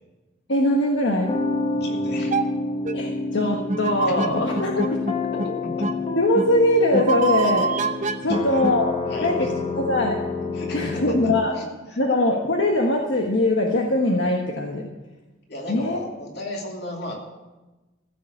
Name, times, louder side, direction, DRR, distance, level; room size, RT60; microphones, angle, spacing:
voice 1, 0.5-1.3 2.9-5.0 6.2-7.7 8.2-8.9 9.2-9.5 9.8-10.2 10.7-11.5 12.0-14.9 15.7-16.0, left 1 dB, 75° left, 1 dB, 1.3 m, -21 dB
sound 1, 1.3-11.5, left 3 dB, 30° left, 1.1 m, -29 dB
voice 2, 1.7-2.5 4.0-4.1 5.4-5.9 8.2-8.6 9.1-9.5 10.5-12.0 15.5-17.1, left 1 dB, 55° left, -1 dB, 2.9 m, -35 dB
sound 2, 2.3-2.4 2.9-3.0 3.7-5.1 5.4-5.5 5.8-5.9 6.3-6.5 6.9-8.7, right 3 dB, 40° right, 0.7 m, -24 dB
15.0 x 6.7 x 8.5 m, 1.1 s
head